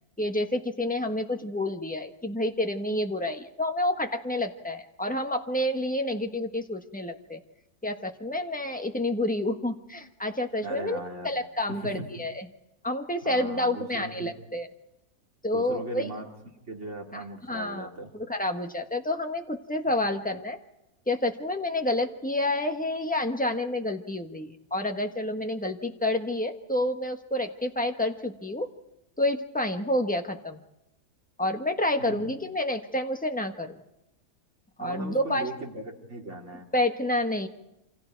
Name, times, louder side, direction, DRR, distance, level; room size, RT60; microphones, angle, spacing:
voice 1, 0.2-7.4 7.8-12.5 12.8-14.7 15.4-16.1 17.1-17.9 18.3-20.6 21.1-28.7 29.2-30.6 31.4-33.8 34.8-35.5 36.7-37.5, left 1 dB, 5° left, 5 dB, 1.2 m, -29 dB
voice 2, 10.6-11.3 11.7-12.2 13.2-14.3 15.5-16.3 16.7-18.1 19.9-20.0 32.0-32.4 34.8-36.7, right 2 dB, 50° right, 1 dB, 3.1 m, -38 dB
28.5 x 25.5 x 4.6 m, 0.89 s
omnidirectional pair, 1.6 m